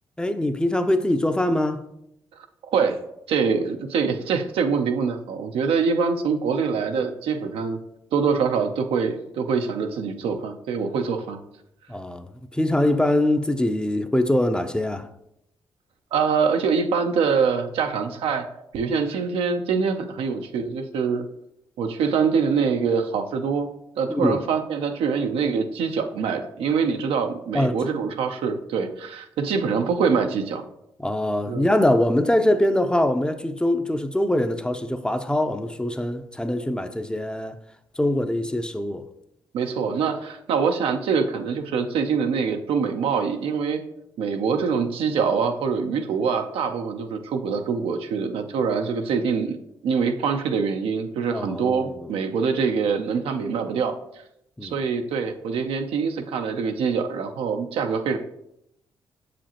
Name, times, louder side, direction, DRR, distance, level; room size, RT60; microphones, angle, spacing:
voice 1, 0.2-1.8 11.9-15.1 24.1-24.4 27.5-28.0 31.0-37.6 38.0-39.1 51.3-52.1 54.6-54.8, left 1 dB, 10° left, 0.5 m, -23 dB
voice 2, 3.3-7.8 8.1-11.4 16.1-18.5 18.7-21.3 21.8-23.7 24.0-30.6 31.5-31.7 39.5-43.8 44.2-49.6 49.8-53.9 54.6-58.2, right 5 dB, 80° right, 0.6 m, -24 dB
6.7 x 5.0 x 2.9 m
supercardioid pair, 60°, 9 cm